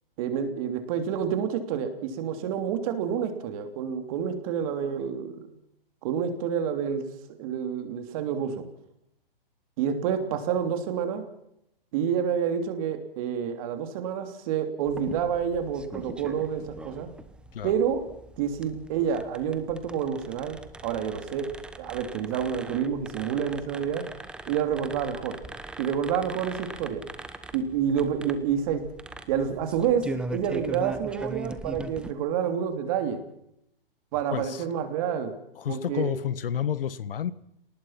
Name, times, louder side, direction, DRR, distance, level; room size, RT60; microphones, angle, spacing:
voice 1, 0.2-5.5 6.0-7.0 7.4-8.6 9.8-11.2 11.9-17.1 17.6-18.0 18.4-21.5 21.8-24.0 24.5-25.4 25.8-27.0 27.5-28.8 29.3-33.2 34.1-35.3 35.7-36.1, right 8 dB, 35° right, 7 dB, 3.1 m, -28 dB
sound 1, 14.8-32.1, right 2 dB, 5° right, 0.9 m, -41 dB
voice 2, 34.3-34.7 35.6-37.3, left 9 dB, 70° left, 17 dB, 1.5 m, -30 dB
29.0 x 19.5 x 5.9 m, 0.80 s
hypercardioid pair, 155°, 29 cm